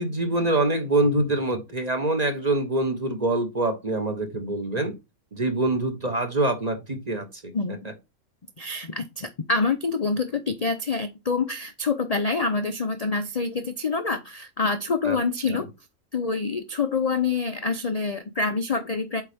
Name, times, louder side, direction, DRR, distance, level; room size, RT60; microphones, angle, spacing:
voice 1, 0.0-4.9 5.3-7.5 15.0-15.2 15.5-15.6, right 2 dB, 30° right, 1.1 m, -25 dB
voice 2, 8.6-15.7 16.1-19.2, left 4 dB, 40° left, 0.5 m, -26 dB
8.1 x 4.1 x 3.5 m
omnidirectional pair, 1.4 m